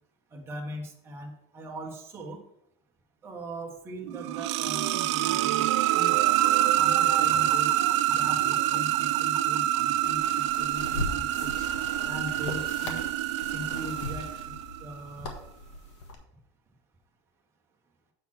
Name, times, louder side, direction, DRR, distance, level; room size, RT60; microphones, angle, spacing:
voice 1, 0.3-2.4 3.2-5.7 5.9-6.2 6.7-7.7 8.1-11.5 12.0-13.0 13.4-14.5 14.8-15.4, equal, 15° right, -1 dB, 1.3 m, -40 dB
sound 1, 4.0-14.8, right 14 dB, 85° right, 0.4 m, -26 dB
sound 2, 10.0-16.1, left 2 dB, 90° left, 1.5 m, -39 dB
7.4 x 4.2 x 6.0 m, 0.75 s
supercardioid pair, 150°, 15 cm